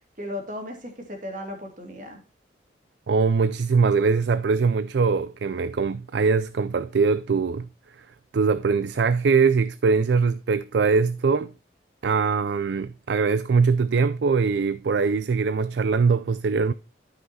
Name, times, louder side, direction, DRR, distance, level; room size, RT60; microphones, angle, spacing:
voice 1, 0.2-2.2, left 1 dB, 45° right, 2.4 m, -35 dB
voice 2, 3.1-7.7 8.3-11.5 12.0-16.7, right 5 dB, 70° right, 0.4 m, -22 dB
12.5 x 5.7 x 2.8 m
head